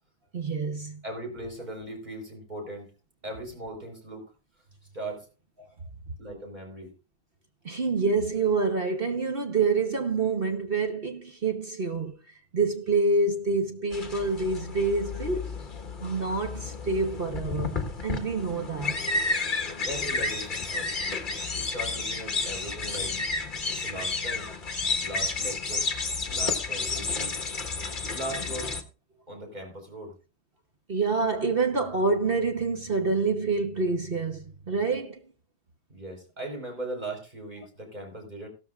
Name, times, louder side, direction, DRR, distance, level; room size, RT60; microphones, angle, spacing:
voice 1, 0.3-1.0 7.6-12.1 12.5-15.6 16.0-19.0 30.9-35.2, right 3 dB, 40° right, 1.0 m, -27 dB
voice 2, 1.0-2.9 3.2-4.2 4.9-5.3 6.2-6.9 19.8-21.0 21.5-23.2 23.7-24.5 25.0-25.9 26.3-27.4 28.1-28.7 29.3-30.1 35.9-38.5, right 1 dB, 20° right, 4.7 m, -38 dB
sound 1, 13.9-28.8, left 3 dB, 30° left, 1.4 m, -31 dB
16.5 x 13.0 x 2.4 m
omnidirectional pair, 2.0 m